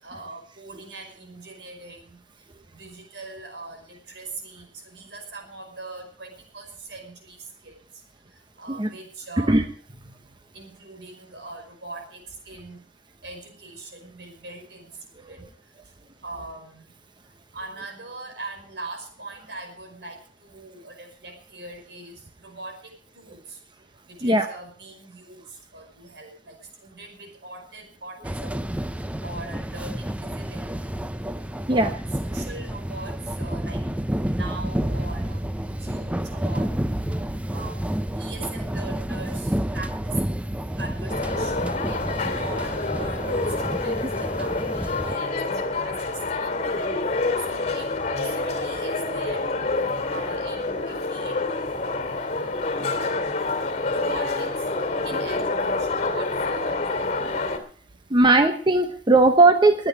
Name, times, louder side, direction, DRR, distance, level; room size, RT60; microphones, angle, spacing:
voice 1, 0.0-2.2 2.7-7.8 8.6-9.6 10.5-12.8 13.2-14.9 15.3-15.5 16.2-16.9 17.5-23.6 24.1-25.4 25.7-28.6 29.2-30.8 31.7-31.9 32.2-34.0 34.3-35.4 35.8-36.7 37.5-40.2 40.8-41.7 42.3-45.3 45.8-46.8 47.5-49.5 50.1-51.9 52.8-53.1 53.9-54.6 55.0-56.8, right 3 dB, 80° right, 3 dB, 5.2 m, -41 dB
sound 1, 28.2-45.2, right 1 dB, 10° right, 0.5 m, -30 dB
voice 2, 37.1-37.4 58.1-59.9, right 2 dB, 25° right, 7 dB, 0.9 m, -18 dB
sound 2, 41.1-57.6, left 3 dB, 40° left, 2.5 m, -27 dB
21.5 x 9.0 x 4.8 m, 0.43 s
head